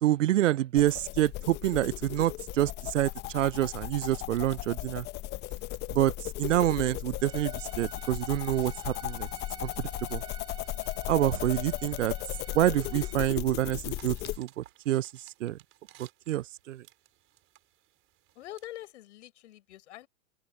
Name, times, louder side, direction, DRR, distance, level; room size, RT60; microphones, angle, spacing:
voice 1, 0.0-5.1 5.9-6.1 6.4-9.3 9.6-10.2 11.1-12.1 12.5-15.1 15.4-15.6 16.0-16.8, right 13 dB, 65° right, 0.6 m, -27 dB
sound 1, 0.8-14.4, left 16 dB, 25° left, 1.0 m, -36 dB
sound 2, 3.0-18.9, right 15 dB, 30° right, 4.3 m, -62 dB
Bowed string instrument, 7.2-13.1, right 9 dB, 10° right, 0.5 m, -50 dB
voice 2, 18.3-20.1, left 15 dB, 55° left, 6.8 m, -45 dB
open air
figure-of-eight pair, 110°, 41 cm